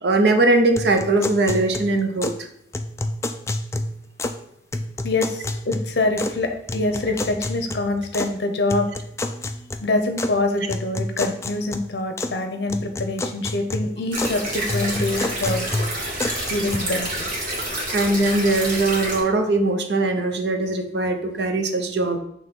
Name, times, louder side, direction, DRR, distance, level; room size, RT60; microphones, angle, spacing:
voice 1, 0.0-2.3 16.0-16.5 17.9-22.2, right 2 dB, 70° right, 5 dB, 0.8 m, -21 dB
sound 1, 0.8-2.4 2.7-4.4 4.7-6.4 6.7-8.3 8.7-10.3 10.7-12.4 12.7-14.4 14.7-16.8, left 2 dB, 15° left, 0.3 m, -29 dB
voice 2, 5.0-8.9 9.8-15.7 16.4-17.1, left 2 dB, 65° left, 6 dB, 0.8 m, -25 dB
sound 2, 14.1-19.2, right 1 dB, 45° right, 1.7 m, -28 dB
5.8 x 3.1 x 5.4 m, 0.74 s
head